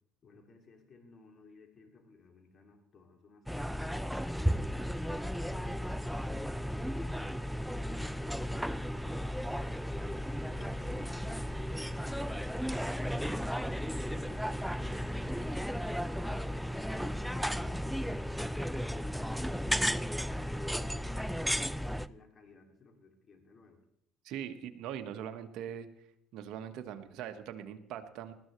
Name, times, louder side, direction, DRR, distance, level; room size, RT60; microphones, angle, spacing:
voice 1, 0.2-4.2 4.9-9.4 16.6-23.8, left 3 dB, 45° left, 3 dB, 2.6 m, -58 dB
sound 1, 3.5-22.1, equal, ahead, 0.5 m, -34 dB
voice 2, 24.2-25.9 26.3-28.3, right 9 dB, 70° right, 7 dB, 1.4 m, -41 dB
20.0 x 13.5 x 3.2 m, 0.73 s
hypercardioid pair, 70°, 0 cm